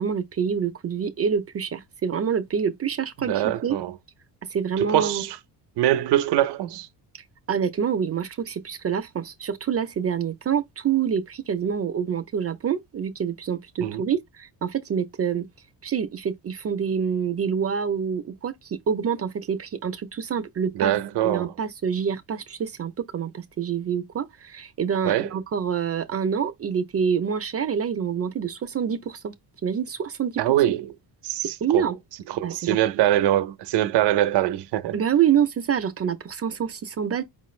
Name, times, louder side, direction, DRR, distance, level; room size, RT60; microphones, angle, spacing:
voice 1, 0.0-3.8 4.5-5.3 7.5-15.5 15.8-20.9 21.2-29.3 29.6-30.5 31.6-32.0 32.4-32.8 34.9-37.2, right 7 dB, 35° right, 0.6 m, -26 dB
voice 2, 3.3-3.9 4.8-5.4 5.8-6.9 13.8-14.1 20.7-21.5 25.0-25.3 30.4-30.9 31.2-31.9 32.3-35.0, right 13 dB, 80° right, 0.7 m, -23 dB
5.1 x 2.4 x 3.1 m
cardioid pair, 135°, 40 cm